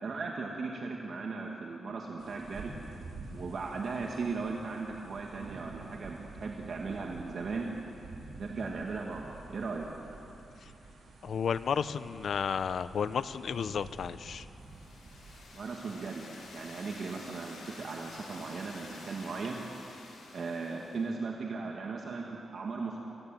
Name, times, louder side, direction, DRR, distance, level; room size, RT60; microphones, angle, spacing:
voice 1, 0.0-2.7 3.3-7.7 8.4-9.9 15.5-16.3 16.5-19.6 20.3-23.0, right 4 dB, 55° right, -1 dB, 2.2 m, -37 dB
sound 1, 2.2-15.4, right 2 dB, 80° right, 5.1 m, -49 dB
voice 2, 11.2-14.5, left 7 dB, 65° left, 13 dB, 0.8 m, -32 dB
sound 2, 14.6-21.1, left 3 dB, 85° left, 6.9 m, -50 dB
27.5 x 16.0 x 9.2 m, 3.0 s
cardioid pair, 115°, 0 cm